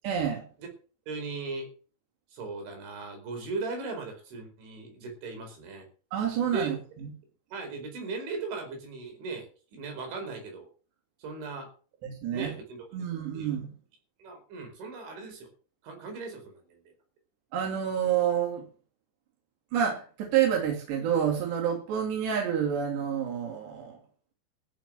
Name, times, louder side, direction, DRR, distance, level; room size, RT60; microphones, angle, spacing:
voice 1, 0.0-0.4 6.1-7.1 12.0-12.5 12.9-13.7 17.5-18.6 19.7-24.0, right 8 dB, 70° right, 1 dB, 5.0 m, -28 dB
voice 2, 1.1-1.7 2.3-5.9 6.5-6.8 7.5-10.7 11.2-11.7 12.3-12.9 13.3-13.6 14.2-15.5 15.8-16.9, right 3 dB, 85° right, 4 dB, 6.9 m, -38 dB
14.5 x 7.1 x 8.7 m, 0.39 s
omnidirectional pair, 5.2 m